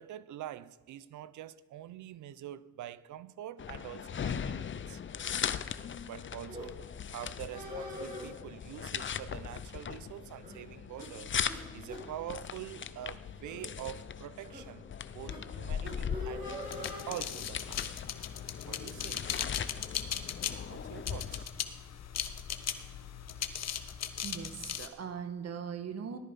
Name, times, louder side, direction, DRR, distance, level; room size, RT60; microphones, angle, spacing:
voice 1, 0.0-5.0 6.0-6.8 7.1-11.3 11.7-16.5 17.1-17.9 18.7-19.3 20.5-21.5, right 12 dB, 75° right, 0.7 m, -45 dB
sound 1, 3.6-21.4, left 8 dB, 40° left, 0.8 m, -39 dB
sound 2, 6.5-6.7 7.5-8.3 9.3-9.6 9.9-10.0 10.4-10.6 11.0-11.1 11.5-11.6 11.9-12.0 12.7-12.9 13.4-13.6 14.5-14.6 15.3-15.4 15.8-17.0, left 1 dB, 30° right, 6.2 m, -43 dB
sound 3, 16.6-24.9, left 9 dB, 60° left, 1.2 m, -38 dB
voice 2, 24.2-26.2, right 7 dB, 55° right, 1.7 m, -40 dB
18.0 x 13.0 x 5.4 m
cardioid pair, 90°, 30 cm